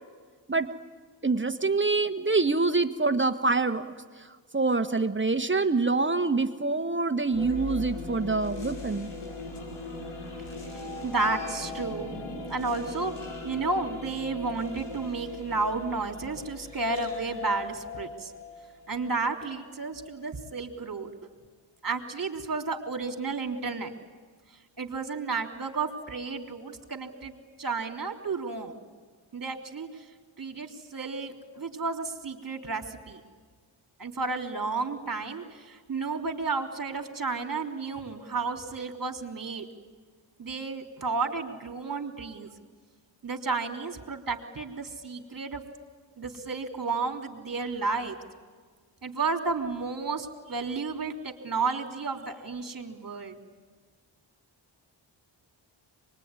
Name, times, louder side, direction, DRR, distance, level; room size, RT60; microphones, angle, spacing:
voice 1, 1.2-3.9 4.5-9.1, right 3 dB, 25° right, 8 dB, 1.4 m, -25 dB
sound 1, 7.3-19.4, left 3 dB, 75° left, 6.1 m, -39 dB
voice 2, 11.0-12.2 12.5-13.1 13.4-18.3 18.9-21.1 21.8-23.9 24.8-27.3 27.6-28.8 29.3-30.0 30.4-33.2 34.0-39.7 40.4-42.5 43.2-45.6 46.2-48.2 49.0-53.4, right 4 dB, 40° right, 3 dB, 3.4 m, -32 dB
24.5 x 21.5 x 9.8 m, 1.5 s
cardioid pair, 50°, 49 cm